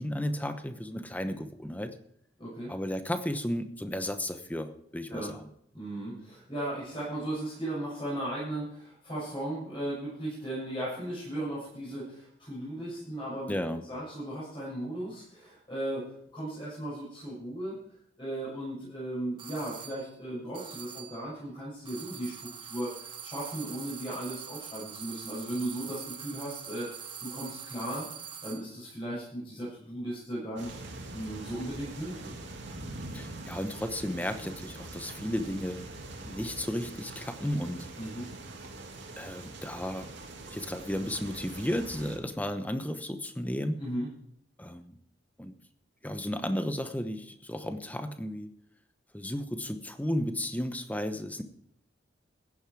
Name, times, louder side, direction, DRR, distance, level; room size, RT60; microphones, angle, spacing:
voice 1, 0.0-2.0 2.7-5.5 13.5-13.8 33.1-35.8 36.2-37.9 39.2-40.1 40.4-43.8 44.6-44.9 45.4-45.5 46.0-48.5 49.1-51.4, left 1 dB, 10° left, 8 dB, 0.9 m, -34 dB
voice 2, 2.4-2.7 5.1-5.3 5.7-13.5 13.9-16.0 16.3-17.7 18.2-28.0 28.4-30.8 31.1-32.4 38.0-38.3 43.8-44.1, right 1 dB, 25° left, -9 dB, 7.2 m, -36 dB
sound 1, 19.4-20.1 20.5-21.3 21.9-28.7, right 7 dB, 25° right, 1.4 m, -44 dB
sound 2, 30.6-42.2, right 2 dB, 65° right, 2.7 m, -43 dB
15.5 x 10.5 x 4.7 m, 0.70 s
head